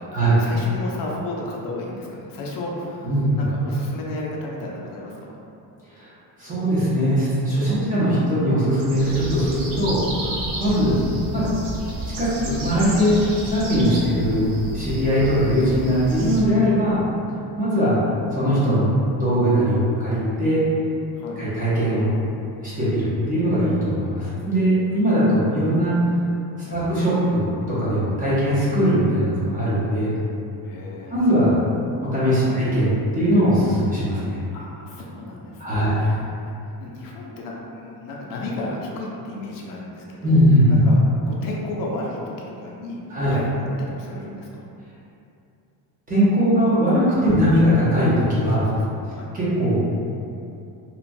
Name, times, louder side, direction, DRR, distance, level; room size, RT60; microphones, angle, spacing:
voice 1, 0.0-5.3 7.6-7.9 21.1-21.4 26.6-26.8 30.6-31.2 32.4-32.6 34.5-43.0 43.3-44.7 47.2-47.4 48.5-49.3, left 2 dB, 55° left, -3 dB, 0.5 m, -34 dB
voice 2, 3.0-3.5 5.9-6.1 6.4-11.0 11.3-11.4 12.2-13.2 13.4-14.5 14.7-17.0 17.6-18.0 18.3-20.6 21.4-22.2 22.6-26.2 26.6-30.1 31.1-31.6 32.0-34.4 35.6-35.9 40.2-40.8 43.1-43.3 46.1-48.6 49.3-49.8, equal, 20° right, -11 dB, 0.6 m, -20 dB
sound 1, 8.8-16.4, right 1 dB, 80° right, 0.7 m, -31 dB
2.9 x 2.2 x 2.5 m, 2.7 s
cardioid pair, 175°, 41 cm